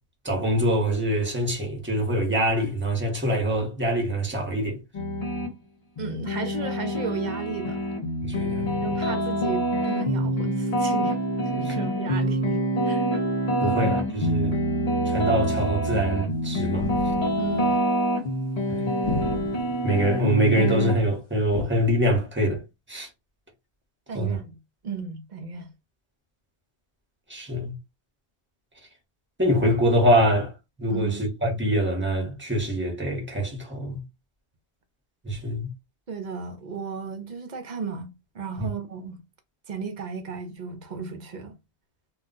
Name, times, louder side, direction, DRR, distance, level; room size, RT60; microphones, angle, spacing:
voice 1, 0.2-4.8 8.2-8.9 13.6-14.6 15.0-16.9 18.7-18.9 19.8-22.6 22.9-23.1 24.1-24.4 27.3-27.7 29.4-30.5 30.8-34.0 35.2-35.7 38.6-38.7, right 1 dB, 10° right, 0.9 m, -24 dB
sound 1, 4.9-5.5 6.0-20.9, equal, 40° left, 0.7 m, -26 dB
voice 2, 6.0-7.8 8.8-11.2 11.5-13.1 13.6-13.8 17.4-17.9 24.1-24.6 24.8-25.7 30.9-31.2 36.1-38.1 38.3-39.2 39.7-41.5, right 5 dB, 50° right, 0.6 m, -34 dB
sound 2, 16.8-17.5 19.0-19.8 21.5-21.7, left 2 dB, 70° left, 1.1 m, -32 dB
2.3 x 2.2 x 3.8 m
omnidirectional pair, 1.1 m